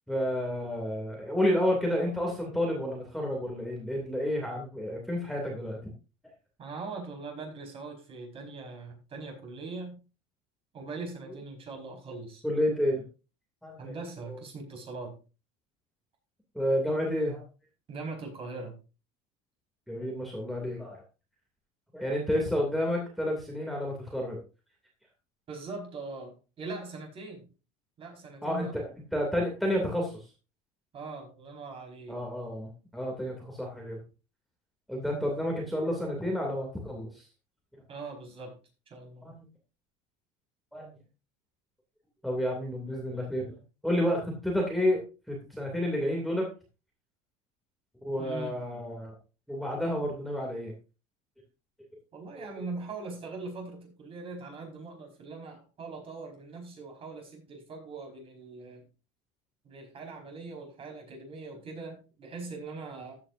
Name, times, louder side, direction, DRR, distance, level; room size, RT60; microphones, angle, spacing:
voice 1, 0.1-5.8 12.4-13.0 13.6-14.0 14.3-14.4 16.5-17.4 19.9-21.0 21.9-24.4 28.4-28.7 29.1-30.3 32.1-34.0 34.9-37.3 37.7-37.8 39.2-39.5 40.7-40.9 42.2-43.6 43.8-45.0 45.3-46.4 48.0-49.1 49.5-50.7 52.3-52.5, equal, ahead, -1 dB, 2.6 m, -30 dB
voice 2, 6.6-10.0 10.7-12.4 13.8-15.2 17.9-18.8 25.5-27.5 28.0-28.8 30.9-32.2 37.9-38.6 38.9-39.3 48.2-48.6 52.1-58.8 59.6-63.2, right 3 dB, 30° right, 2 dB, 4.8 m, -41 dB
14.5 x 8.9 x 2.6 m, 0.32 s
cardioid pair, 145°, 18 cm